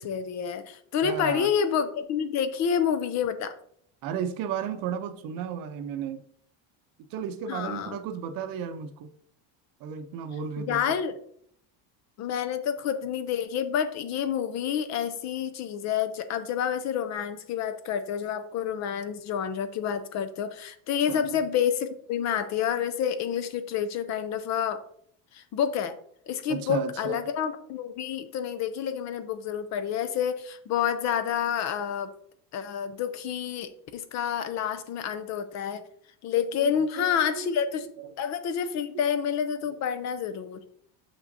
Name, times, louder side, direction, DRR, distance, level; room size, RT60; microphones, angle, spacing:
voice 1, 0.0-3.5 7.5-8.0 10.7-11.2 12.2-24.8 25.3-26.0 26.3-32.1 32.5-35.8 36.2-37.9 38.2-40.6, left 8 dB, 40° left, 0.5 m, -28 dB
voice 2, 1.0-1.5 4.0-6.2 7.1-9.1 9.8-10.8 21.1-21.4 26.5-27.2 36.6-37.6 38.0-38.1 38.9-39.0, right 8 dB, 55° right, 0.7 m, -34 dB
6.8 x 5.9 x 2.6 m
cardioid pair, 160°, 42 cm